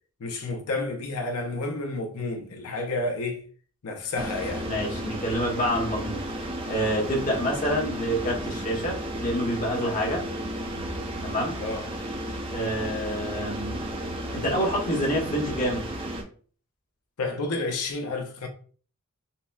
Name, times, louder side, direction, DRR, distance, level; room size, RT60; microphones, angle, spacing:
voice 1, 0.2-3.4 3.8-4.7 11.6-11.9 17.2-18.5, left 2 dB, 90° left, 0.6 m, -30 dB
sound 1, 4.2-16.2, right 1 dB, 25° right, 0.5 m, -33 dB
voice 2, 4.6-6.2 6.7-10.2 11.2-11.6 12.5-13.8 14.3-15.9, equal, 35° left, 1.0 m, -27 dB
5.5 x 2.1 x 2.3 m
head